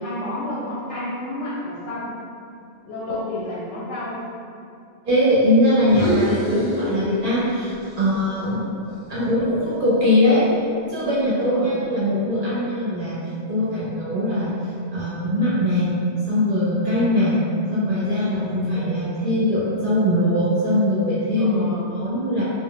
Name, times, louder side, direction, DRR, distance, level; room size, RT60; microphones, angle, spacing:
voice 1, 0.0-2.1 2.9-4.2 11.3-11.8 18.1-18.4 21.4-21.9, left 1 dB, 80° left, -9 dB, 0.9 m, -31 dB
voice 2, 5.1-8.6 9.1-10.5 10.9-13.2 13.5-14.5 14.9-15.9 16.3-17.4 17.7-22.4, left 1 dB, 55° right, -10 dB, 0.8 m, -21 dB
sound 1, 5.8-7.5 7.8-10.0, equal, 40° left, 0.4 m, -28 dB
2.2 x 2.1 x 3.7 m, 2.5 s
omnidirectional pair, 1.2 m